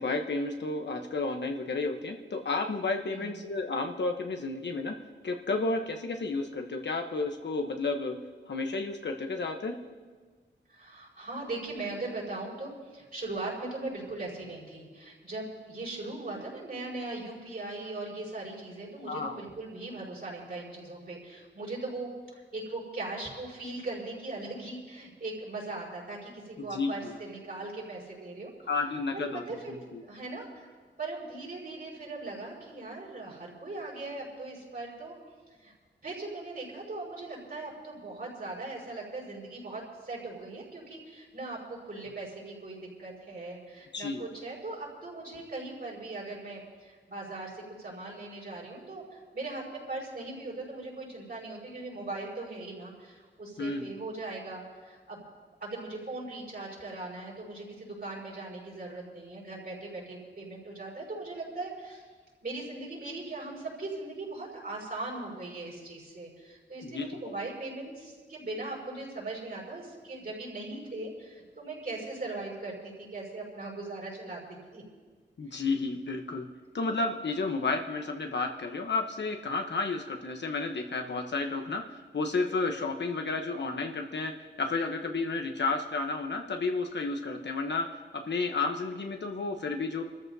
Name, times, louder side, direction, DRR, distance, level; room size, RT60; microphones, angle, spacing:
voice 1, 0.0-4.9 5.2-8.2 8.5-9.7 19.1-19.4 26.7-27.1 28.7-29.6 29.9-30.0 43.9-44.2 53.6-53.9 66.8-67.1 75.4-76.5 76.7-81.8 82.1-87.9 88.1-90.0, left 3 dB, 65° left, 4 dB, 1.0 m, -31 dB
voice 2, 3.1-3.5 10.7-28.5 29.1-30.7 31.0-35.1 35.6-35.7 36.0-55.2 55.6-62.1 62.4-74.8 75.5-75.6, right 2 dB, 50° right, -4 dB, 5.2 m, -39 dB
28.5 x 13.5 x 2.7 m, 1.5 s
wide cardioid pair, 110°, 20 cm